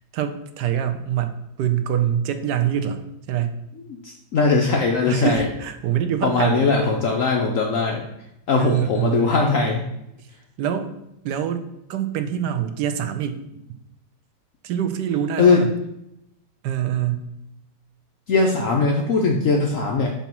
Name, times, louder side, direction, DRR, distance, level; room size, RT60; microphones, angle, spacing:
voice 1, 0.0-3.0 3.3-3.6 5.1-7.0 8.6-9.3 10.6-10.9 11.2-13.4 14.6-15.7 16.6-17.2, right 9 dB, 80° right, 8 dB, 1.2 m, -25 dB
voice 2, 3.9-5.4 6.2-8.0 8.5-9.8 15.4-15.6 18.3-20.1, left 4 dB, 60° left, 1 dB, 0.9 m, -20 dB
6.9 x 2.9 x 5.9 m, 0.85 s
omnidirectional pair, 1.8 m